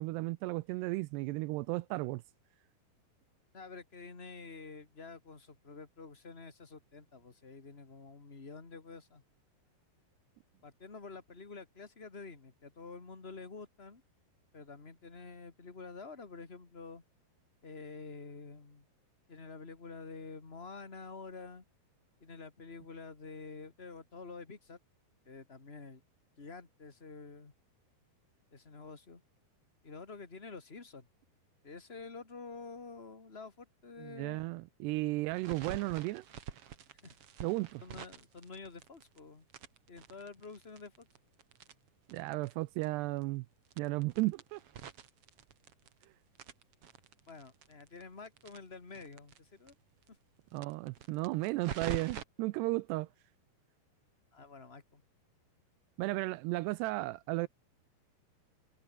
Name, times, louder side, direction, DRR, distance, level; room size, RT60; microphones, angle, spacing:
voice 1, 0.0-2.2 34.0-36.2 37.4-37.8 42.1-43.5 43.8-44.6 50.5-53.1 56.0-57.5, right 20 dB, 85° right, 2.7 m, -34 dB
voice 2, 3.5-9.2 10.6-14.0 14.5-17.0 17.6-18.9 19.3-21.6 22.2-24.8 25.2-26.0 26.4-27.5 28.5-29.2 29.8-31.1 31.6-34.5 37.0-37.2 37.8-39.5 39.9-41.1 47.3-49.7 50.1-50.2 54.3-55.0, left 4 dB, 20° left, 1.7 m, -48 dB
sound 1, 35.3-39.2 39.5-42.5 42.8-42.9 43.2-43.3 43.7-46.0 46.3-49.4 49.7-49.8 50.0-50.1 50.5-52.2, right 8 dB, 50° right, 1.9 m, -45 dB
omnidirectional pair, 4.8 m